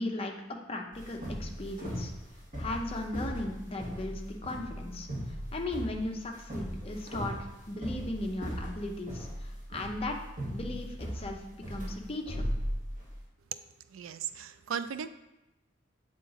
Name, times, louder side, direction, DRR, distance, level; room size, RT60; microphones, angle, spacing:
voice 1, 0.0-2.1 2.6-5.1 5.5-10.2 10.5-12.4, left 2 dB, 30° left, 2 dB, 0.6 m, -37 dB
sound 1, 0.9-13.2, equal, 40° right, 2.4 m, -37 dB
voice 2, 13.9-15.1, right 7 dB, 85° right, 12 dB, 0.4 m, -36 dB
8.0 x 3.8 x 3.9 m, 0.96 s
head